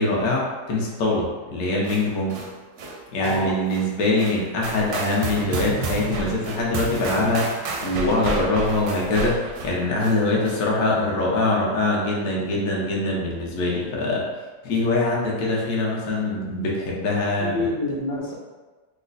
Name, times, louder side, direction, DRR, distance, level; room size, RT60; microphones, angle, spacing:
voice 1, 0.0-2.4 3.1-14.2 14.6-17.7, left 2 dB, 65° left, -3 dB, 1.1 m, -23 dB
sound 1, 1.7-10.7, right 3 dB, 70° right, 0.8 m, -41 dB
voice 2, 3.2-3.5 17.4-18.3, left 2 dB, 80° left, -3 dB, 1.3 m, -27 dB
sound 2, 4.6-9.7, right 4 dB, 85° right, 1.2 m, -30 dB
3.1 x 2.1 x 3.8 m, 1.3 s
omnidirectional pair, 1.9 m